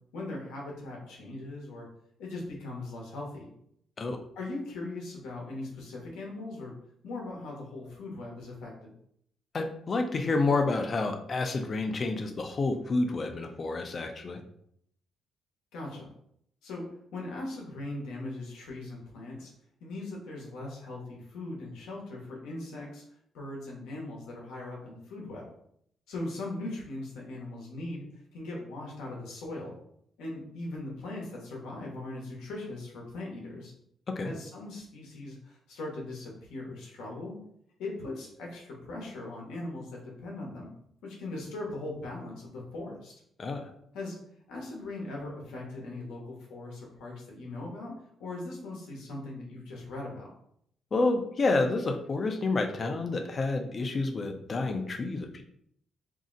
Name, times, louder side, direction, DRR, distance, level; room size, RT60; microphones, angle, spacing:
voice 1, 0.1-1.9 2.2-3.5 4.4-6.7 7.0-8.9 15.7-16.1 16.6-16.8 17.1-19.5 19.8-23.0 23.3-25.5 26.1-28.1 28.3-29.7 30.2-33.7 34.2-37.4 37.8-40.7 41.0-43.1 43.9-44.2 44.5-47.9 48.2-50.3, left 2 dB, 90° left, -2 dB, 0.8 m, -39 dB
voice 2, 9.5-14.4 34.1-34.3 43.4-43.6 50.9-55.4, left 3 dB, 40° left, 5 dB, 0.4 m, -29 dB
2.6 x 2.0 x 3.7 m, 0.71 s
cardioid pair, 90°, 0 cm